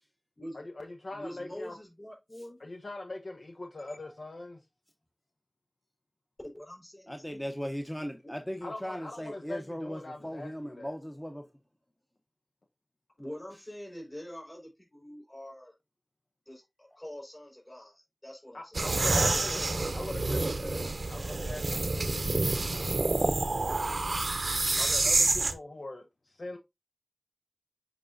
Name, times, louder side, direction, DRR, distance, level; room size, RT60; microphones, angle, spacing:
voice 1, 0.5-1.8 2.6-4.6 8.6-10.9 18.5-19.6 19.9-22.0 22.7-24.2 24.8-26.6, left 2 dB, 80° left, 0.7 m, -42 dB
voice 2, 1.1-2.6 6.4-7.4 8.2-8.3 13.2-15.7 16.5-18.8 19.2-19.9, equal, 45° left, 4.1 m, -45 dB
voice 3, 7.1-11.5, equal, 15° left, 0.8 m, -38 dB
sound 1, 18.7-25.5, right 2 dB, 80° right, 0.7 m, -28 dB
7.5 x 4.8 x 2.6 m
wide cardioid pair, 40°, 0 cm